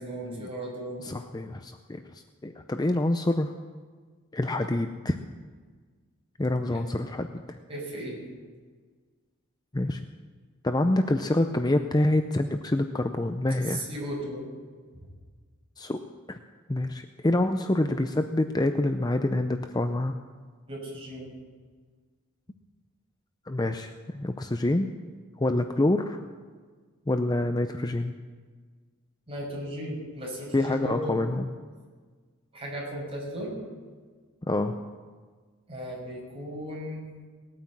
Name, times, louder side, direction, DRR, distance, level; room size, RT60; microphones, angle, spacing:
voice 1, 0.0-1.0 4.5-4.7 6.7-6.8 7.7-8.2 13.6-14.4 14.9-15.1 20.7-21.3 29.3-31.2 32.5-33.5 35.7-37.0, equal, 25° right, -3 dB, 6.1 m, -36 dB
voice 2, 1.0-3.5 4.3-5.2 6.4-7.6 9.7-10.0 10.6-13.9 15.8-16.0 16.3-16.4 16.7-20.1 23.5-24.9 25.4-26.2 27.1-28.2 30.5-31.5 34.5-34.8, left 1 dB, 20° left, 7 dB, 0.5 m, -26 dB
19.0 x 9.4 x 7.4 m, 1.5 s
head